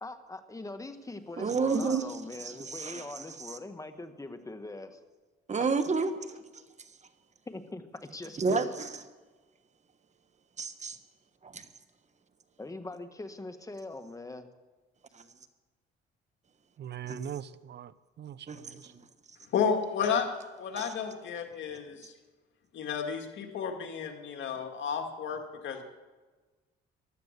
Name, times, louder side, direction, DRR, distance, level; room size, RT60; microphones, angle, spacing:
voice 1, 0.0-5.0 7.5-8.7 12.6-14.5, left 2 dB, 15° left, 8 dB, 1.5 m, -42 dB
voice 2, 1.4-3.6 5.5-6.6 8.4-9.0 10.6-11.0 11.4-11.7 15.1-15.2 17.0-17.2 18.5-19.0 20.7-20.9, right 4 dB, 35° right, 9 dB, 1.3 m, -31 dB
voice 3, 16.8-18.9, right 10 dB, 60° right, 17 dB, 0.6 m, -41 dB
voice 4, 19.5-20.3 20.5-22.1 22.7-25.8, left 6 dB, 70° left, 4 dB, 2.1 m, -32 dB
15.0 x 12.0 x 6.7 m, 1.3 s
cardioid pair, 90°, 20 cm